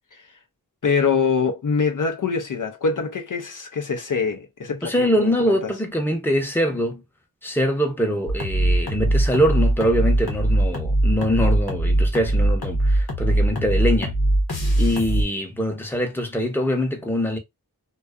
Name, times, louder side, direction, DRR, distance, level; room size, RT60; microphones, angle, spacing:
voice 1, 0.8-5.7, left 5 dB, 55° left, 0.5 m, -24 dB
voice 2, 4.8-7.0 7.4-14.1 14.8-17.4, equal, 5° left, 0.7 m, -23 dB
sound 1, 8.3-15.2, right 1 dB, 85° left, 0.9 m, -21 dB
2.5 x 2.3 x 2.3 m
wide cardioid pair, 45°, 37 cm